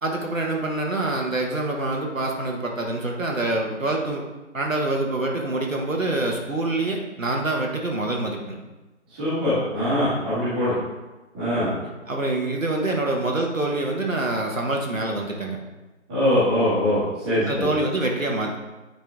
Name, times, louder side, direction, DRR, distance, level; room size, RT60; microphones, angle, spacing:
voice 1, 0.0-4.2 4.5-8.5 12.1-15.6 17.5-18.6, right 2 dB, 85° right, 0 dB, 1.6 m, -26 dB
voice 2, 9.2-10.7 11.3-11.7 16.1-17.7, left 1 dB, 5° right, -13 dB, 1.6 m, -22 dB
9.0 x 4.4 x 3.6 m, 1.1 s
figure-of-eight pair, 160°, 39 cm